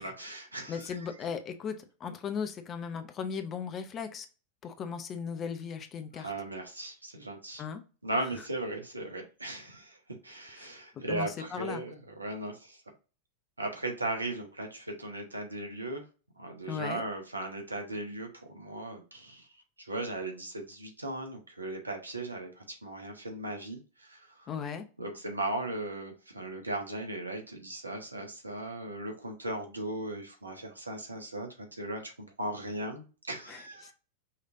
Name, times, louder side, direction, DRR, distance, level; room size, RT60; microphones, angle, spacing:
voice 1, 0.0-0.9 6.1-7.6 8.0-10.0 10.2-12.8 13.6-16.0 16.4-19.5 19.8-24.5 25.0-33.9, right 2 dB, 80° right, 3 dB, 1.1 m, -37 dB
voice 2, 0.7-4.3 4.6-6.3 7.6-7.8 10.6-10.7 11.0-11.8 16.7-17.0 24.5-24.9 33.5-33.9, left 6 dB, 30° left, 8 dB, 0.7 m, -37 dB
5.7 x 3.2 x 2.5 m, 0.34 s
figure-of-eight pair, 90°, 0 cm